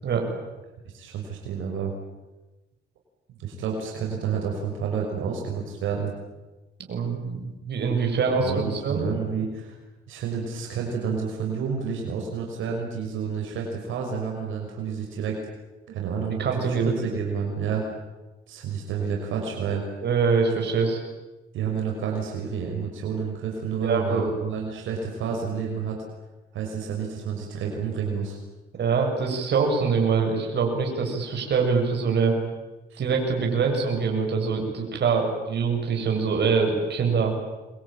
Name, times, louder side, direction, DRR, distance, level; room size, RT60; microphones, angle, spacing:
voice 1, 0.9-1.9 3.3-6.1 8.4-9.8 10.1-15.4 15.9-17.8 18.5-19.8 21.5-26.0 26.5-28.4 32.9-33.0, right 6 dB, 85° right, 0 dB, 6.1 m, -30 dB
voice 2, 6.9-9.0 15.9-16.0 16.4-16.9 20.0-21.0 23.8-24.3 28.8-32.4 33.0-37.3, right 5 dB, 60° right, 2 dB, 7.6 m, -24 dB
26.5 x 23.0 x 9.2 m, 1.1 s
cardioid pair, 90°, 20 cm